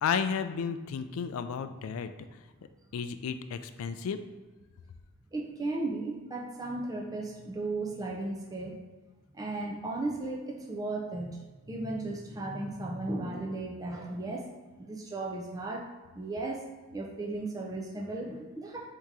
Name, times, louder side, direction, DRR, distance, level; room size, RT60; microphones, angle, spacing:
voice 1, 0.0-2.1 2.9-4.2, left 6 dB, 70° left, 9 dB, 0.3 m, -32 dB
voice 2, 5.3-8.8 9.3-14.4 14.8-15.9 16.2-16.6 16.9-18.9, right 2 dB, 15° right, -1 dB, 0.4 m, -35 dB
3.6 x 2.8 x 4.6 m, 1.2 s
head